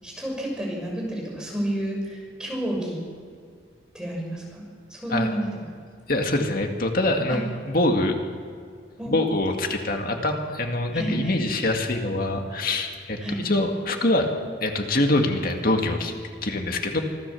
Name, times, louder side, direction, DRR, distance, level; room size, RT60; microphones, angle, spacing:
voice 1, 0.0-3.0 3.9-4.6 4.9-5.7 7.3-7.4 9.0-9.2 10.9-11.4 13.2-13.4, right 1 dB, 5° right, -2 dB, 5.8 m, -30 dB
voice 2, 6.1-8.1 9.1-13.2 13.4-14.3 14.6-16.1 16.4-17.0, left 2 dB, 50° left, 3 dB, 2.1 m, -24 dB
25.5 x 14.5 x 7.1 m, 2.1 s
head